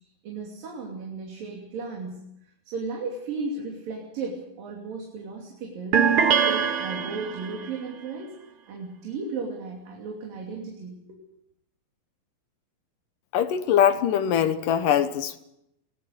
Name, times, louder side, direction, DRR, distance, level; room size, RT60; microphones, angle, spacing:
voice 1, 0.2-2.2 2.7-8.3 8.7-11.2, right 4 dB, 75° right, 0 dB, 4.6 m, -35 dB
sound 1, 5.9-7.7, right 7 dB, 55° right, 1.6 m, -23 dB
voice 2, 13.3-15.4, left 9 dB, 75° left, 11 dB, 2.6 m, -22 dB
21.5 x 17.5 x 8.1 m, 0.80 s
omnidirectional pair, 4.0 m